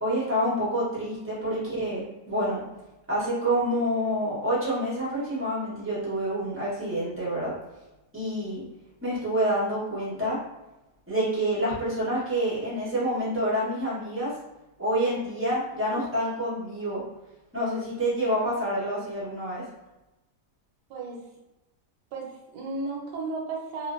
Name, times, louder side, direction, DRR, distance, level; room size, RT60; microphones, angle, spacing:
voice 1, 0.0-2.6 3.1-7.5 8.1-8.6 9.0-10.4 11.1-14.3 14.8-17.0 17.5-19.6, equal, 15° right, -8 dB, 0.5 m, -27 dB
voice 2, 20.9-21.2 22.1-23.9, right 3 dB, 75° right, -1 dB, 1.2 m, -34 dB
2.7 x 2.1 x 2.4 m, 0.99 s
omnidirectional pair, 1.8 m